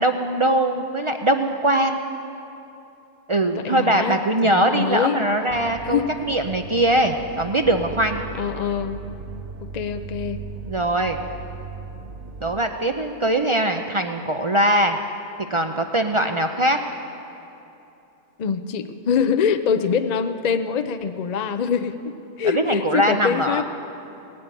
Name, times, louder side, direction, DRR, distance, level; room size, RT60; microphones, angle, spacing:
voice 1, 0.0-2.0 3.3-8.2 10.7-11.2 12.4-15.0 15.5-16.8 22.5-23.6, right 1 dB, 40° right, 5 dB, 0.4 m, -21 dB
voice 2, 3.4-5.2 5.8-6.1 8.4-9.0 9.6-10.4 18.4-23.6, left 7 dB, 50° left, 9 dB, 0.5 m, -24 dB
sound 1, 5.5-12.6, right 5 dB, 70° right, 1.0 m, -37 dB
17.5 x 8.6 x 8.9 m, 2.9 s
omnidirectional pair, 1.3 m